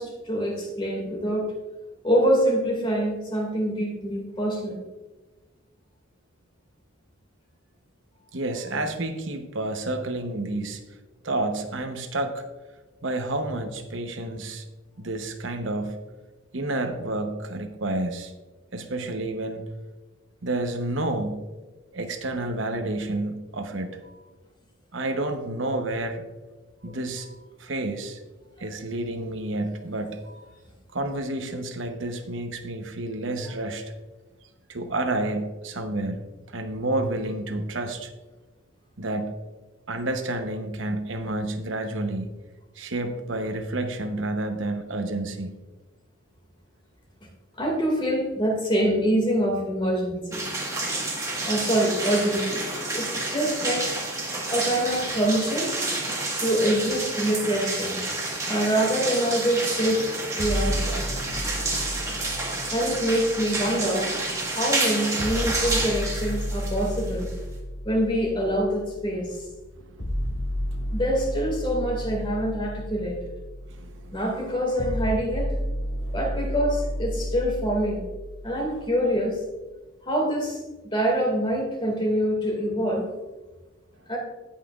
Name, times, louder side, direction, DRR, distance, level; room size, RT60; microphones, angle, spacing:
voice 1, 0.0-1.5 2.0-4.8 14.3-14.4 26.9-27.0 47.6-50.5 51.4-52.6 52.9-54.0 54.5-55.8 56.4-58.0 58.5-61.0 62.7-64.2 64.4-67.3 67.8-69.5 70.9-73.2 74.1-75.5 76.1-78.0 78.4-79.4 80.0-80.6 80.9-83.1 84.1-84.2, equal, 25° left, 0 dB, 2.0 m, -25 dB
voice 2, 8.3-10.8 11.2-12.4 13.0-14.7 15.0-16.0 16.5-18.3 18.7-19.7 20.4-21.4 21.9-24.0 24.9-26.2 26.8-27.3 27.6-28.2 28.6-30.2 30.9-33.8 34.7-38.1 39.0-39.3 39.9-42.3 42.8-45.5 69.8-71.0 73.7-74.2 76.0-76.2, right 2 dB, 65° right, 5 dB, 0.9 m, -30 dB
sound 1, 50.3-67.6, right 2 dB, 15° right, 1.4 m, -29 dB
sound 2, 60.4-64.4 65.2-79.2, equal, 75° left, 2.5 m, -32 dB
17.0 x 5.7 x 2.4 m, 1.2 s
head